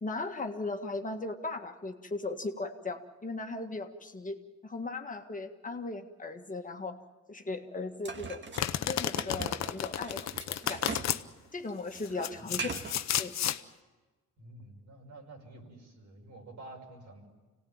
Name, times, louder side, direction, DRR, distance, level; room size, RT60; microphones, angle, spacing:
voice 1, 0.0-7.0 7.3-8.4 8.8-10.8 11.5-12.7 13.2-13.3, left 3 dB, 25° left, 4 dB, 1.7 m, -37 dB
sound 1, 8.0-11.2 11.5-13.0, right 4 dB, 40° right, 1.7 m, -41 dB
Domestic sounds home sounds, 8.6-11.2 11.9-13.6, left 11 dB, 65° left, 0.9 m, -32 dB
voice 2, 12.4-12.8 14.4-17.3, right 2 dB, 70° right, 1 dB, 5.6 m, -49 dB
26.0 x 18.0 x 8.9 m, 1.3 s
cardioid pair, 90°, 30 cm